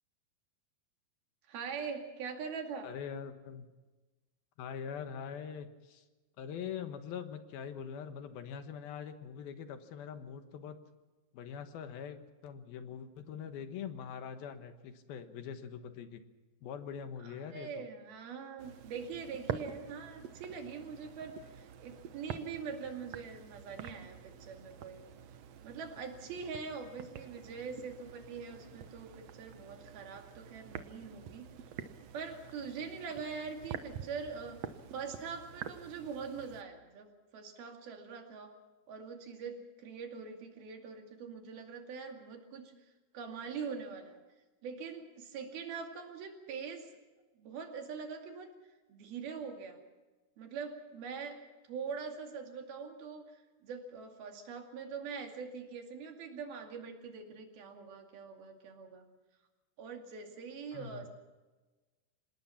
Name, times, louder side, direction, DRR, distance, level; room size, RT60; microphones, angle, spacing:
voice 1, 1.5-2.9 17.2-25.0 25.6-31.5 32.1-34.6 34.9-37.1 37.3-38.5 38.9-42.7 43.1-44.2 44.6-47.0 47.4-48.5 48.9-49.8 50.4-51.4 51.7-59.1 59.8-61.1, right 5 dB, 70° right, 4 dB, 4.2 m, -43 dB
voice 2, 2.8-3.7 4.6-6.0 6.4-10.8 11.3-16.2 16.6-17.8 60.7-61.1, left 7 dB, 70° left, 8 dB, 3.0 m, -43 dB
sound 1, 18.6-36.6, right 9 dB, 90° right, 1.4 m, -47 dB
26.0 x 19.5 x 5.8 m, 1.2 s
omnidirectional pair, 4.6 m